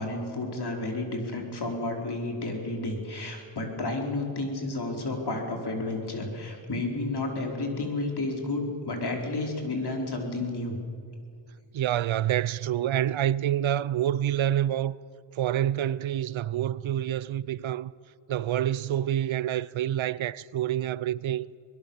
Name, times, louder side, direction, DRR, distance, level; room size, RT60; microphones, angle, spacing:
voice 1, 0.0-10.8, left 2 dB, 50° left, 4.5 m, -31 dB
voice 2, 11.7-15.0 15.3-17.9 18.3-21.6, right 11 dB, 70° right, 0.7 m, -27 dB
23.0 x 20.5 x 7.2 m
cardioid pair, 65°, 49 cm